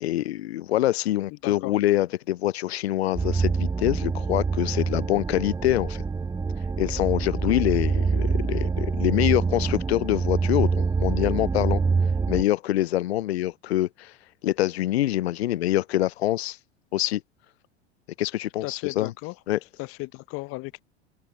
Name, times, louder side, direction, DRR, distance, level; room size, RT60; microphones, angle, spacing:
voice 1, 0.0-6.0 6.8-11.8 12.3-14.1 14.4-16.6 16.9-17.2 18.2-19.1 19.5-19.6, left 14 dB, 65° left, 0.6 m, -25 dB
voice 2, 1.3-1.7 7.3-7.6 18.6-19.4 19.8-20.8, left 25 dB, 40° left, 1.0 m, -35 dB
sound 1, 3.2-12.4, right 4 dB, 10° right, 0.7 m, -25 dB
figure-of-eight pair, 80°, 34 cm